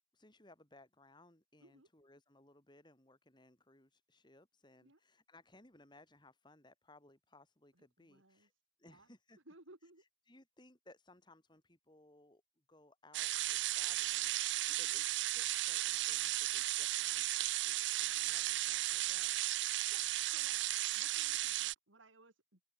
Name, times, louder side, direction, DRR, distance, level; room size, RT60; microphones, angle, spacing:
voice 1, 0.1-8.5 8.8-9.4 9.8-12.4 12.7-19.3, left 2 dB, 25° left, 3.3 m, -63 dB
voice 2, 7.8-8.5 8.8-9.1 9.5-10.0 14.7-15.0 19.9-20.6 20.9-22.6, right 2 dB, 80° right, 3.9 m, -61 dB
sound 1, 13.1-21.7, right 16 dB, 65° right, 0.5 m, -35 dB
open air
head